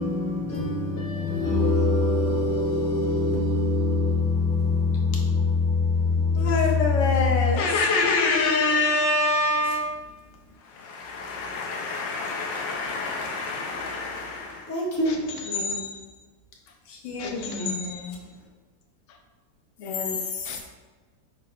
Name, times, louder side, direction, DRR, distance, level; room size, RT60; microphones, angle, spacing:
voice 1, 0.0-6.8 14.7-15.2, left 3 dB, 15° left, 0.5 m, -24 dB
voice 2, 6.3-9.9 10.8-14.7 16.9-18.2, left 3 dB, 90° left, 1.5 m, -26 dB
voice 3, 15.0-16.0 17.2-18.1 19.1-19.2 19.8-20.6, left 4 dB, 70° left, 0.7 m, -34 dB
5.8 x 2.2 x 3.8 m
omnidirectional pair, 1.9 m